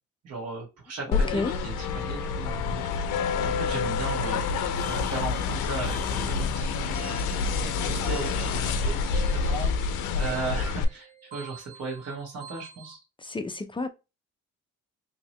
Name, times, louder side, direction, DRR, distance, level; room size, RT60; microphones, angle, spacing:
voice 1, 0.2-2.9 3.4-4.4 4.8-13.0, right 3 dB, 55° right, 1.5 m, -36 dB
sound 1, 1.1-10.8, left 5 dB, 85° left, 0.5 m, -28 dB
voice 2, 1.1-1.5 13.2-13.9, left 3 dB, 15° left, 0.4 m, -31 dB
sound 2, 4.2-12.9, right 5 dB, 40° right, 1.9 m, -45 dB
2.9 x 2.7 x 2.9 m
cardioid pair, 90°, 30 cm